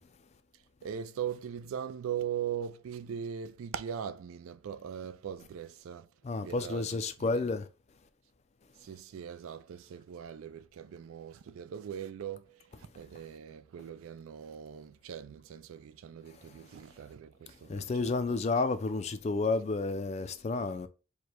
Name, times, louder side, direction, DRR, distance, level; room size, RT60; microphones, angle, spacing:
voice 1, 0.8-6.1 6.4-7.4 8.8-18.4, right 8 dB, 80° right, 0.3 m, -40 dB
voice 2, 6.2-7.7 17.7-20.9, left 3 dB, 30° left, 0.3 m, -31 dB
4.7 x 2.2 x 4.3 m
head